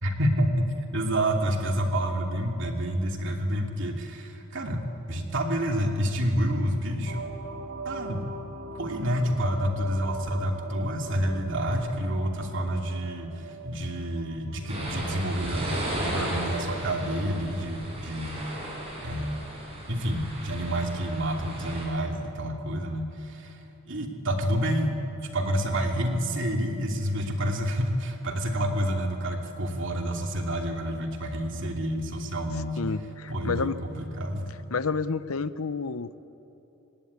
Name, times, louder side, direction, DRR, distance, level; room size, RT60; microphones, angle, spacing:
voice 1, 0.0-4.8 5.1-7.2 7.8-8.2 8.7-18.5 19.0-19.5 19.9-32.8 33.3-34.7, equal, 60° right, 2 dB, 2.7 m, -28 dB
sound 1, 7.0-19.6, right 2 dB, 75° right, 2.5 m, -43 dB
sound 2, 14.7-21.9, right 1 dB, 25° right, 7.2 m, -35 dB
voice 2, 32.8-33.8 34.7-36.2, left 4 dB, 80° left, 14 dB, 0.8 m, -29 dB
26.0 x 19.0 x 9.6 m, 3.0 s
head